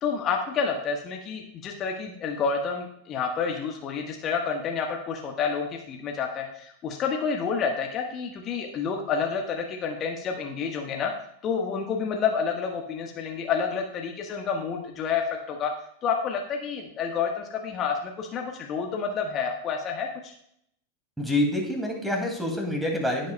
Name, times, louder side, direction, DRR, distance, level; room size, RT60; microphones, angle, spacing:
voice 1, 0.0-11.1 11.4-15.7 16.0-20.3, left 6 dB, 30° left, 2 dB, 1.2 m, -29 dB
voice 2, 21.2-23.3, left 1 dB, 5° right, 1 dB, 2.3 m, -27 dB
15.5 x 7.9 x 2.2 m, 0.72 s
figure-of-eight pair, 90°, 0 cm